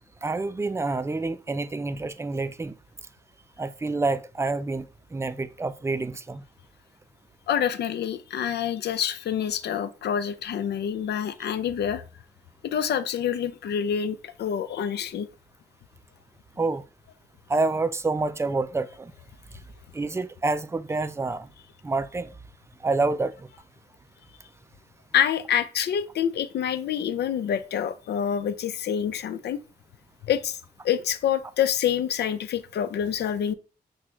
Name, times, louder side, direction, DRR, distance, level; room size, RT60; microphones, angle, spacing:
voice 1, 0.2-2.7 3.6-4.9 5.1-6.4 16.6-16.8 17.5-19.1 19.9-21.5 21.8-22.3 22.8-23.3, right 3 dB, 15° right, 0.3 m, -27 dB
voice 2, 7.5-12.0 12.6-15.3 25.1-29.6 30.2-30.6 30.8-33.5, left 9 dB, 90° left, 0.4 m, -27 dB
5.9 x 2.3 x 3.1 m
cardioid pair, 80°, 17 cm